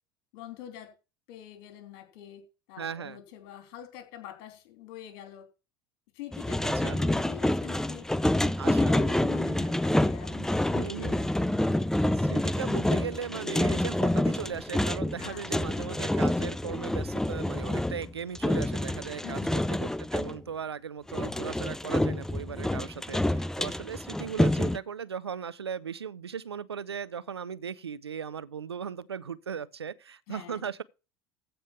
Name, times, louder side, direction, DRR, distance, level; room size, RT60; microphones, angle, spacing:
voice 1, 0.3-0.9 1.3-2.4 2.7-5.4 6.1-8.1 8.7-11.2 15.2-15.4 15.8-15.9 19.2-19.6 30.3-30.6, left 12 dB, 60° left, 3.3 m, -45 dB
voice 2, 2.8-3.2 6.6-7.0 8.6-9.1 10.7-11.3 12.1-19.4 19.7-30.8, right 7 dB, 85° right, 0.6 m, -38 dB
sound 1, 6.3-20.4 21.1-24.8, left 1 dB, 5° left, 0.6 m, -28 dB
14.5 x 5.2 x 5.9 m
figure-of-eight pair, 75°, 13 cm